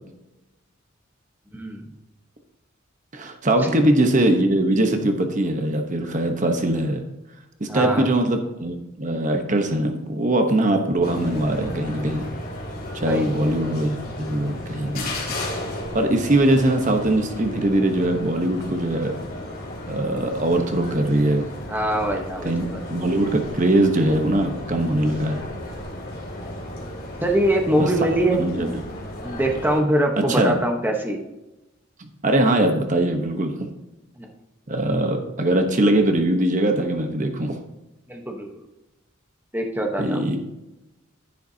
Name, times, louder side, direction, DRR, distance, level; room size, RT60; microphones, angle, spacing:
voice 1, 1.5-1.8 3.6-3.8 7.7-8.1 13.0-13.7 21.7-22.8 27.2-28.7 29.2-31.2 34.2-34.3 38.1-38.6 39.5-40.3, right 1 dB, 10° right, 2 dB, 1.0 m, -23 dB
voice 2, 3.1-7.0 7.6-12.2 12.9-15.1 15.9-19.1 19.8-21.5 22.4-25.4 27.8-27.9 28.4-28.7 30.2-30.5 32.0-33.7 34.7-37.6 40.0-40.4, right 1 dB, 40° right, 5 dB, 1.0 m, -21 dB
sound 1, 11.0-29.8, left 1 dB, 45° left, 2.6 m, -34 dB
10.5 x 10.5 x 2.8 m, 0.98 s
head